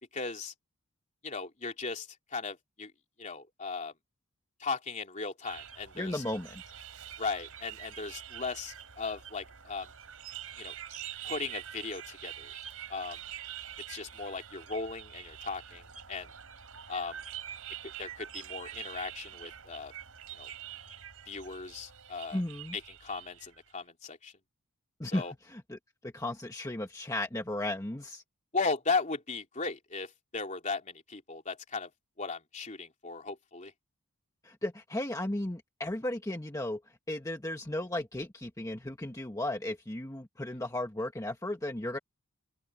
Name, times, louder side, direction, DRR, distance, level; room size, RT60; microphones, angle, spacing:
voice 1, 0.1-0.5 1.2-2.9 3.2-3.9 4.6-6.2 7.2-9.9 10.6-10.7 11.2-12.5 12.9-13.2 13.9-16.3 16.9-17.2 17.8-19.9 20.4-20.5 21.3-22.4 22.7-24.3 25.0-25.3 28.5-31.9 32.2-33.7, left 4 dB, 35° left, 3.3 m, -37 dB
sound 1, 5.4-23.7, right 10 dB, 75° right, 3.5 m, -45 dB
voice 2, 6.0-6.6 22.3-22.8 25.0-28.2 34.4-36.8 37.1-42.0, left 1 dB, 15° left, 1.3 m, -35 dB
open air
head